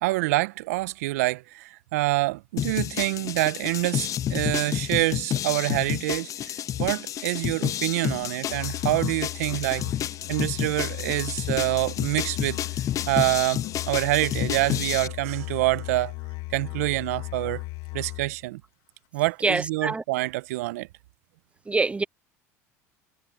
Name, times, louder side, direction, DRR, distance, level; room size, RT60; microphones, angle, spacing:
voice 1, 0.0-9.9 10.3-12.6 13.1-16.1 16.5-17.6 17.9-18.6 19.1-20.9, right 20 dB, 70° right, 1.1 m, -26 dB
sound 1, 2.6-15.1, left 11 dB, 40° left, 0.5 m, -30 dB
Musical instrument, 8.5-18.5, left 23 dB, 60° left, 2.9 m, -36 dB
voice 2, 19.4-20.0 21.7-22.0, right 3 dB, 15° right, 0.4 m, -25 dB
hypercardioid pair, 75°, 8 cm